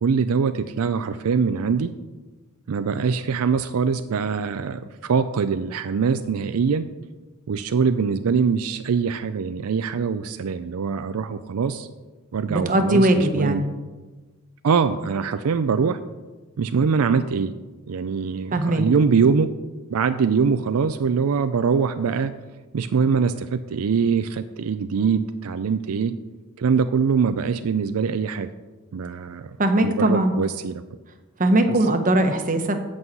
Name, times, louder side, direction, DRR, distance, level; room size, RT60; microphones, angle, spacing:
voice 1, 0.0-1.9 2.7-6.9 7.5-11.9 12.3-13.6 14.6-16.0 16.6-17.5 17.9-19.5 19.9-22.3 22.7-26.1 26.6-28.5 28.9-29.5 29.8-30.8, right 5 dB, 80° right, 10 dB, 0.4 m, -23 dB
voice 2, 12.5-13.6 18.5-18.8 29.6-30.3 31.4-32.8, right 1 dB, 35° right, 6 dB, 0.9 m, -20 dB
8.4 x 5.5 x 7.8 m, 1.2 s
head